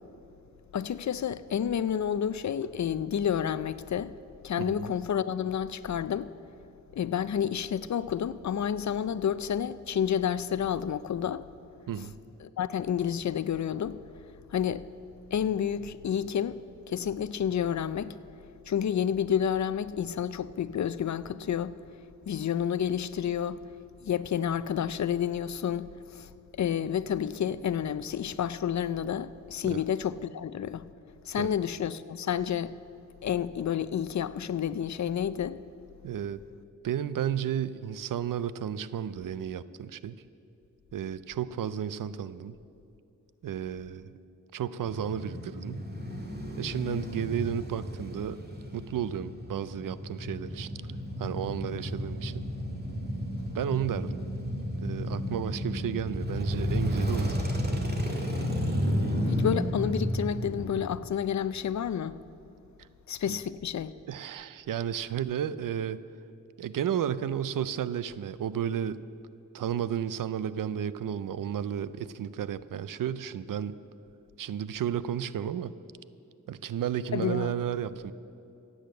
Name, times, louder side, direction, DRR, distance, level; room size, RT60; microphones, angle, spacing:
voice 1, 0.7-4.2 4.4-6.3 6.9-11.4 12.4-14.0 14.5-14.8 15.3-16.6 16.9-18.2 18.7-21.7 22.3-23.6 24.0-26.3 26.6-30.9 31.3-32.8 33.2-35.6 59.3-62.2 63.1-63.9 77.1-77.5, left 8 dB, 60° left, 0.5 m, -30 dB
voice 2, 4.6-4.9 11.9-12.1 29.6-29.8 31.4-31.5 36.0-36.4 36.8-40.1 40.9-42.5 43.4-44.1 44.5-45.9 46.6-48.5 48.7-50.7 51.2-52.5 53.5-54.2 54.8-57.3 63.3-63.4 64.1-66.0 66.6-69.0 69.5-73.7 74.4-75.7 76.5-78.1, right 9 dB, 85° right, 0.5 m, -33 dB
Male speech man speaking / Motorcycle / Idling, 44.8-60.8, equal, 30° right, 2.0 m, -32 dB
15.5 x 8.7 x 7.7 m
wide cardioid pair, 80°, 32 cm